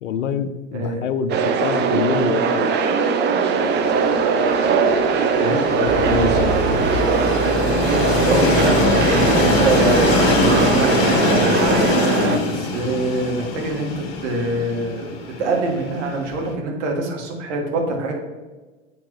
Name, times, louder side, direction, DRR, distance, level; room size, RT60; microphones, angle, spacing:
voice 1, 0.0-2.7 5.7-6.5 7.0-7.4, left 7 dB, 75° left, 12 dB, 0.6 m, -26 dB
voice 2, 0.7-1.0 5.4-5.6 6.0-6.6 8.2-11.3 12.5-15.1 15.4-18.1, right 2 dB, 65° right, 1 dB, 1.8 m, -24 dB
sound 1, 1.3-12.4, right 5 dB, 30° right, 0.7 m, -20 dB
Train, 3.6-16.5, left 3 dB, 50° left, 1.4 m, -23 dB
Truck / Idling, 5.8-11.9, left 1 dB, 20° left, 1.7 m, -29 dB
8.6 x 4.4 x 3.2 m, 1.2 s
hypercardioid pair, 95°, 38 cm